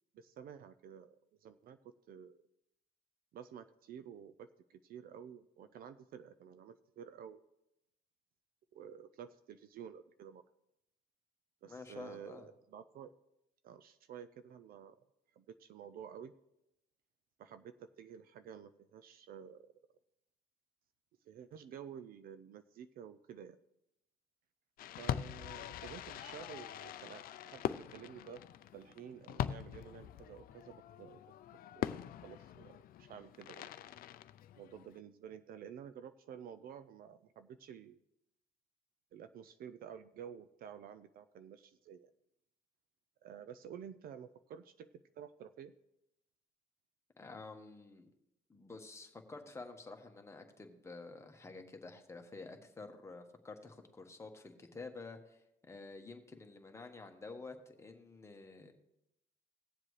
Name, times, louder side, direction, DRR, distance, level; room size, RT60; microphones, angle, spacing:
voice 1, 0.1-1.2 1.4-1.8 2.1-2.4 3.3-7.4 8.7-10.4 11.6-13.1 13.6-15.0 15.4-16.3 17.4-19.7 21.3-23.6 25.0-28.4 28.7-31.2 31.7-33.7 34.6-38.0 39.1-42.1 43.2-44.9 45.2-45.7, right 8 dB, 60° right, 11 dB, 0.5 m, -51 dB
voice 2, 11.7-12.5 47.2-48.1 48.5-58.7, left 3 dB, 15° left, 4 dB, 1.3 m, -50 dB
Fireworks, 24.8-35.0, left 11 dB, 60° left, 0.4 m, -43 dB
18.0 x 7.4 x 3.2 m, 0.86 s
cardioid pair, 110°, 17 cm